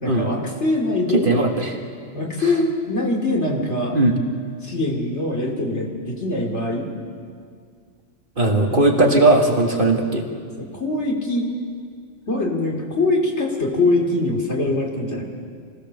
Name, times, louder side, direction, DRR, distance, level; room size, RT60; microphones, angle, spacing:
voice 1, 0.0-1.3 2.1-4.0 4.6-6.9 8.7-9.4 10.1-10.2 10.6-11.5 12.3-15.2, left 2 dB, 60° left, 0 dB, 2.9 m, -23 dB
voice 2, 1.3-1.8 3.9-4.2 8.4-10.3, right 2 dB, 40° right, 1 dB, 2.0 m, -18 dB
25.5 x 16.5 x 6.9 m, 2.1 s
omnidirectional pair, 1.3 m